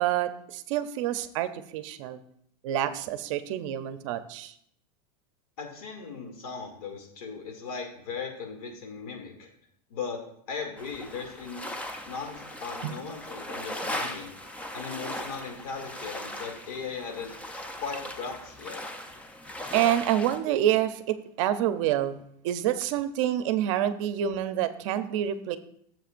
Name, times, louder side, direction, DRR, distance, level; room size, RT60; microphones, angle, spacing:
voice 1, 0.0-2.2 2.6-4.5 12.8-12.9 19.7-25.6, right 11 dB, 55° right, 11 dB, 0.7 m, -27 dB
voice 2, 5.6-9.5 9.9-10.2 10.5-11.7 12.0-14.4 14.7-17.4 17.8-18.8, left 5 dB, 85° left, 2 dB, 2.5 m, -38 dB
sound 1, 10.8-20.4, left 1 dB, 5° left, 0.6 m, -38 dB
13.0 x 7.5 x 2.6 m, 0.69 s
supercardioid pair, 155°, 19 cm